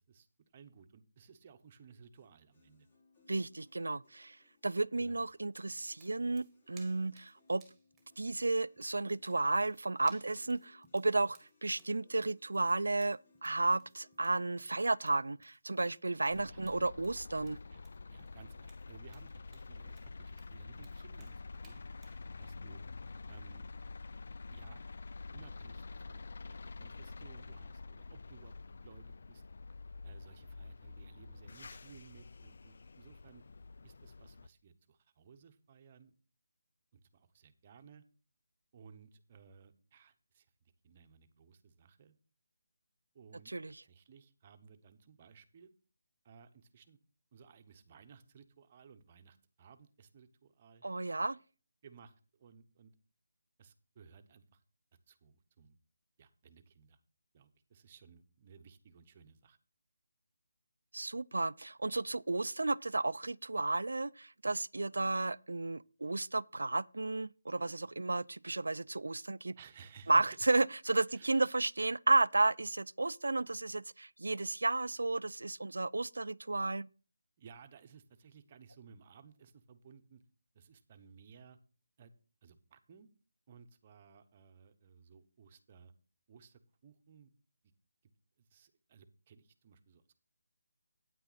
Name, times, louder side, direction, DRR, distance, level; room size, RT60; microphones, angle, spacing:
voice 1, 0.5-2.9 5.0-5.2 16.4-16.6 17.7-17.8 18.1-22.8 23.3-23.7 24.5-24.8 25.3-28.5 28.8-29.4 30.0-33.4 33.8-36.1 36.9-38.0 38.7-42.1 43.1-45.7 46.2-47.0 47.3-50.8 51.8-52.9 53.6-54.6 55.1-55.8 56.2-57.0 57.3-59.6 69.6-70.2 71.1-71.5 77.4-80.2 80.5-81.6 82.0-82.1 82.4-83.1 83.5-85.9 86.3-87.3 88.4-90.2, right 6 dB, 25° right, 0.9 m, -59 dB
sound 1, 2.1-14.6, left 3 dB, 35° left, 3.6 m, -68 dB
voice 2, 3.3-4.4 4.6-7.6 8.2-17.6 43.5-43.8 50.8-51.4 60.9-69.6 70.1-76.9, right 2 dB, 90° right, 0.4 m, -33 dB
sound 2, 5.1-22.2, right 4 dB, 5° right, 1.7 m, -66 dB
sound 3, 16.3-34.5, left 3 dB, 55° left, 0.4 m, -48 dB
9.2 x 8.9 x 4.0 m
figure-of-eight pair, 170°, 0 cm